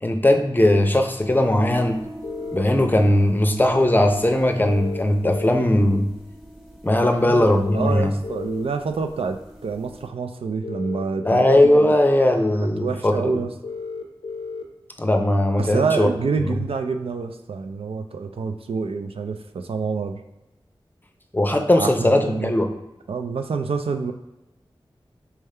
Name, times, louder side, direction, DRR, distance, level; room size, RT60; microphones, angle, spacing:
voice 1, 0.0-2.0 2.5-6.1 6.8-8.1 11.2-13.4 15.0-16.1 21.3-22.7, left 1 dB, 20° left, 5 dB, 0.6 m, -19 dB
sound 1, 1.2-10.1, equal, ahead, 1.0 m, -43 dB
sound 2, 2.2-2.6 4.6-5.6 7.6-8.6 10.6-11.6 13.6-14.6, left 4 dB, 75° left, 0.5 m, -33 dB
voice 2, 7.2-11.9 12.8-13.5 15.6-20.2 21.8-22.5 23.1-24.1, right 5 dB, 80° right, 7 dB, 0.4 m, -27 dB
4.4 x 3.5 x 3.3 m, 0.97 s
wide cardioid pair, 50°, 10 cm